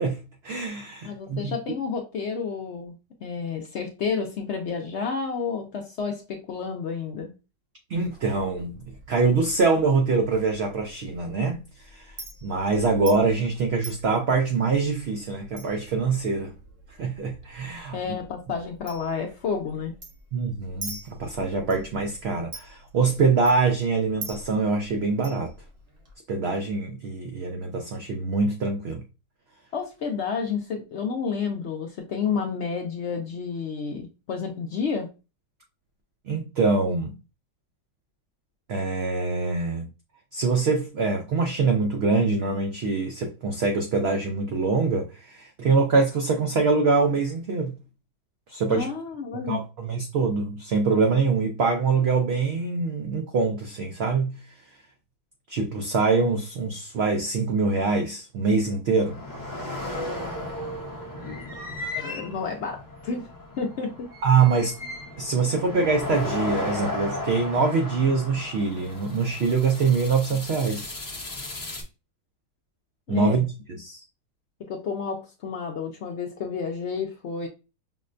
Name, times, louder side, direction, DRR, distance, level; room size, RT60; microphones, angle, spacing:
voice 1, 0.0-1.6 7.9-8.8 9.1-12.2 12.4-16.5 17.0-18.0 20.3-25.5 26.3-29.0 36.3-37.1 38.7-39.9 40.3-47.8 48.5-48.9 49.5-54.4 55.5-59.2 64.2-64.7 65.2-71.0 73.1-73.5 73.8-74.0, right 4 dB, 85° right, 0.5 m, -24 dB
voice 2, 1.0-3.0 3.2-7.3 17.9-19.9 29.7-35.1 48.7-49.6 62.0-62.8 63.0-63.3 63.6-64.1 73.1-73.5 74.7-77.5, left 5 dB, 65° left, 0.7 m, -30 dB
Chink clink, 7.9-26.1, right 2 dB, 40° right, 1.1 m, -46 dB
sound 1, 59.0-71.8, left 1 dB, 25° left, 0.5 m, -35 dB
5.6 x 2.1 x 2.5 m
omnidirectional pair, 1.7 m